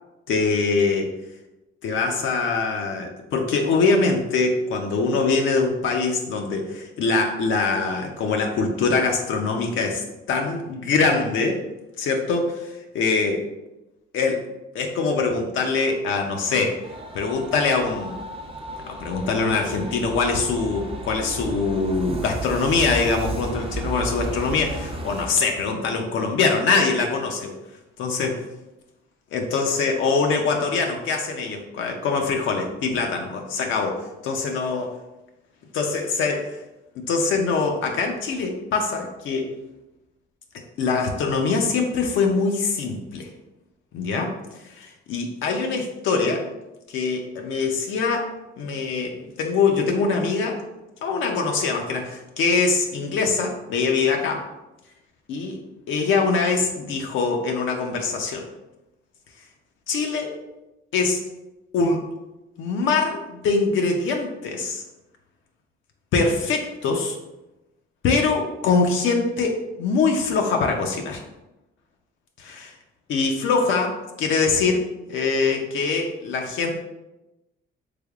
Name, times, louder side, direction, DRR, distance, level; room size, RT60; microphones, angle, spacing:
voice 1, 0.3-1.1 1.8-11.6 12.0-13.4 14.1-14.4 14.7-16.8 17.1-18.2 18.9-27.6 28.0-28.3 29.3-34.8 35.7-36.6 37.0-39.5 40.8-43.3 43.9-46.5 46.9-50.6 51.0-54.5 55.3-55.6 55.9-58.5 59.9-60.3 60.9-61.2 61.7-62.0 62.6-64.8 66.1-67.2 68.0-71.2 72.4-72.8 73.1-76.7, left 4 dB, 75° left, 2 dB, 0.5 m, -23 dB
sound 1, 16.8-25.3, right 1 dB, 30° right, 0.5 m, -33 dB
3.4 x 3.3 x 2.3 m, 0.98 s
cardioid pair, 90°, 20 cm